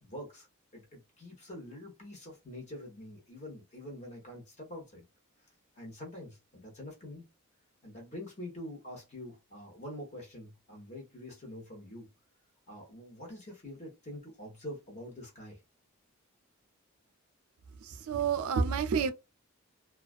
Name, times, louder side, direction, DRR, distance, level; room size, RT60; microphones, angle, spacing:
voice 1, 0.0-0.5 0.7-5.0 5.8-7.2 7.8-12.1 12.7-15.6, left 1 dB, 35° left, 0.8 m, -45 dB
voice 2, 17.9-19.1, right 6 dB, 90° right, 0.4 m, -29 dB
2.3 x 2.2 x 2.4 m
head